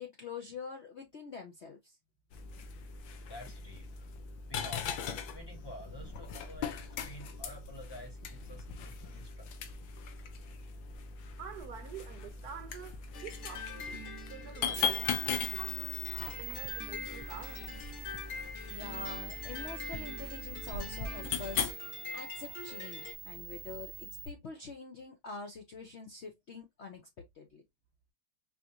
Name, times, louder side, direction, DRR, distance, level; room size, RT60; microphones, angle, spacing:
voice 1, 0.0-2.0 18.7-27.0 27.3-27.6, left 4 dB, 65° left, 0.6 m, -45 dB
sound 1, 2.3-21.7, left 6 dB, 85° left, 1.5 m, -40 dB
voice 2, 3.2-4.1 4.5-5.0 5.3-6.7 7.0-9.5, left 1 dB, 15° left, 1.3 m, -50 dB
voice 3, 11.2-17.7, right 8 dB, 70° right, 1.0 m, -48 dB
sound 2, 13.1-23.1, left 4 dB, 50° left, 1.0 m, -45 dB
sound 3, 14.7-24.3, right 2 dB, 35° right, 0.6 m, -44 dB
4.7 x 2.6 x 2.8 m
omnidirectional pair, 2.0 m